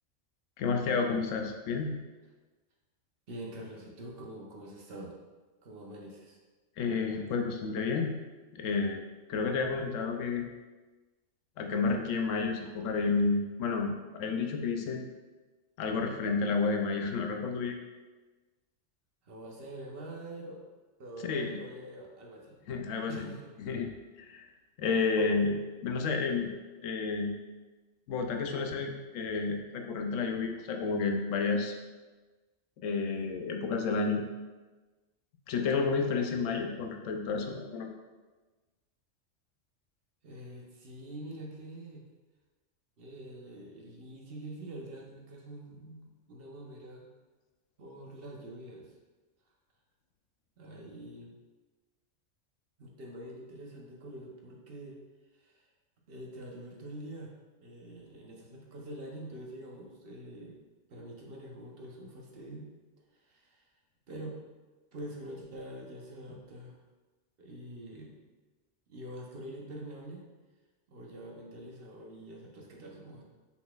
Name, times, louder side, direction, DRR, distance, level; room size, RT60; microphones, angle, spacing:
voice 1, 0.6-1.9 6.8-8.2 8.6-9.0 9.3-10.5 11.6-15.0 15.8-17.8 21.2-21.6 22.7-23.3 23.6-23.9 24.2-24.4 24.8-26.5 26.8-27.3 28.1-31.7 32.8-34.2 35.5-37.9, left 4 dB, 85° left, 3 dB, 1.0 m, -30 dB
voice 2, 3.3-5.2 5.6-6.4 19.2-20.6 21.0-22.6 23.1-23.5 40.2-42.0 43.0-47.0 47.8-48.9 50.6-51.4 52.8-55.0 55.4-55.6 56.1-57.3 57.6-60.6 60.9-62.7 63.2-63.7 64.1-64.4 64.9-66.8 67.4-68.2 68.9-70.2 70.9-73.2, right 1 dB, 55° right, -1 dB, 1.0 m, -45 dB
5.8 x 3.9 x 2.3 m, 1.2 s
omnidirectional pair, 1.3 m